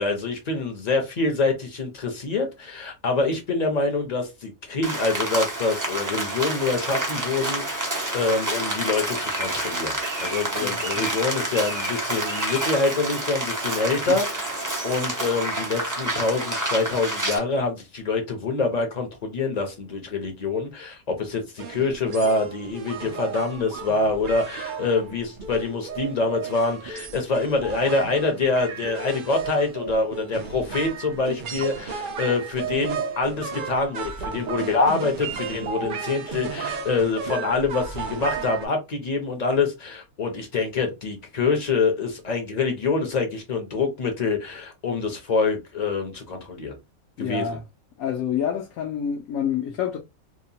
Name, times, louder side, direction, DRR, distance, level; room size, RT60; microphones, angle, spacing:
voice 1, 0.0-46.7 47.2-47.6, left 3 dB, 40° left, 0.6 m, -25 dB
Rain, 4.8-17.4, right 1 dB, 25° right, 0.4 m, -28 dB
voice 2, 10.6-11.1 14.1-14.2 47.2-47.6 48.0-50.0, left 8 dB, 75° left, 1.0 m, -28 dB
sound 1, 21.6-38.7, right 5 dB, 80° right, 0.4 m, -34 dB
2.9 x 2.1 x 2.7 m
omnidirectional pair, 1.5 m